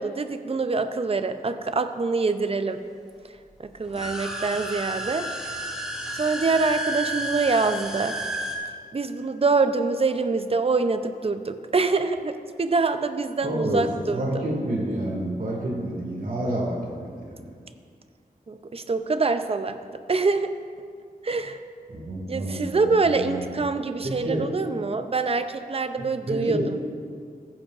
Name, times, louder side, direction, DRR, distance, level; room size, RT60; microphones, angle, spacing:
voice 1, 0.0-2.8 3.6-5.6 6.1-8.2 8.9-14.3 18.5-20.5 21.2-21.6 22.3-26.8, right 4 dB, 40° right, 9 dB, 0.5 m, -25 dB
sound 1, 3.8-8.6, right 1 dB, 5° right, 1.3 m, -32 dB
voice 2, 13.4-13.8 14.1-17.5 21.9-23.4 24.0-24.4 26.3-26.7, right 1 dB, 65° right, -3 dB, 2.2 m, -29 dB
15.0 x 8.9 x 2.5 m, 2.1 s
wide cardioid pair, 95°, 15 cm